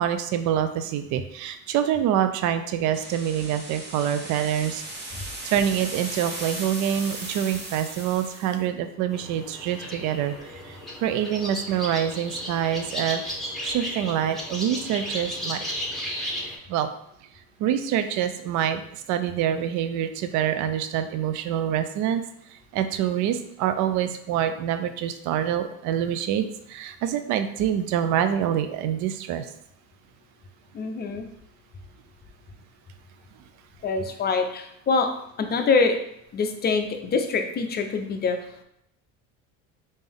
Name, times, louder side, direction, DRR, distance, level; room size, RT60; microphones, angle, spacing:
voice 1, 0.0-4.8 5.4-13.2 13.6-15.6 16.7-16.9 17.6-22.2 22.7-29.5, right 10 dB, 50° right, 9 dB, 0.4 m, -26 dB
sound 1, 2.9-8.6, right 2 dB, 25° right, 1.0 m, -37 dB
sound 2, 9.1-16.6, equal, ahead, 1.1 m, -34 dB
voice 2, 30.7-31.3 33.8-35.1 35.4-36.0 36.3-38.4, left 4 dB, 25° left, 5 dB, 0.5 m, -24 dB
3.4 x 2.7 x 3.4 m, 0.75 s
supercardioid pair, 90°, 39 cm